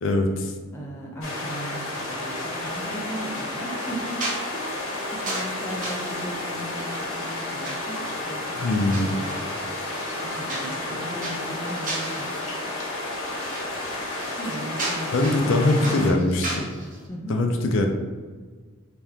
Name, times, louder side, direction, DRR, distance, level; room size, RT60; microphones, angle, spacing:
voice 1, 0.0-0.5 8.6-9.1 15.1-16.7 17.3-17.9, left 2 dB, 65° left, 3 dB, 0.4 m, -22 dB
voice 2, 0.7-4.2 4.5-8.0 8.2-9.5 10.2-12.4 14.4-16.5 17.1-17.4, right 1 dB, 10° left, -3 dB, 0.6 m, -37 dB
sound 1, 1.2-16.1, left 2 dB, 85° left, 1.1 m, -31 dB
sound 2, 2.8-17.1, right 1 dB, 40° right, 0.7 m, -37 dB
3.5 x 2.9 x 3.4 m, 1.4 s
head